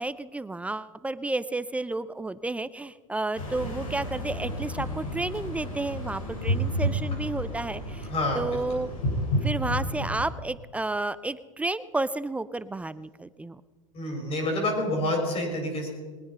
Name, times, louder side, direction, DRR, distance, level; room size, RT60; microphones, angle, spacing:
voice 1, 0.0-8.1 8.4-8.9 9.4-13.6, right 2 dB, 10° right, 16 dB, 0.4 m, -31 dB
sound 1, 3.3-10.3, equal, 85° left, 4.7 m, -31 dB
voice 2, 8.0-8.9 13.9-15.9, left 1 dB, 35° left, 2 dB, 5.0 m, -28 dB
21.0 x 9.4 x 5.6 m, 1.4 s
hypercardioid pair, 110°, 17 cm